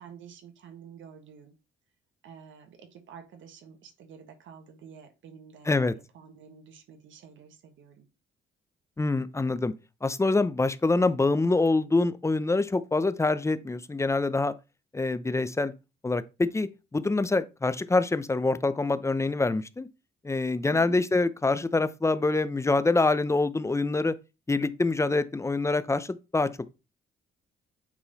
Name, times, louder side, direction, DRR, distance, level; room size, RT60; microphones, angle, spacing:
voice 1, 0.0-1.5 2.2-8.1 20.7-21.0, right 7 dB, 75° right, 1.5 m, -49 dB
voice 2, 9.0-9.7 10.0-14.5 14.9-15.7 16.0-19.9 20.2-24.2 24.5-26.5, left 3 dB, 15° left, 0.7 m, -25 dB
8.9 x 3.8 x 4.1 m
cardioid pair, 90°, 20 cm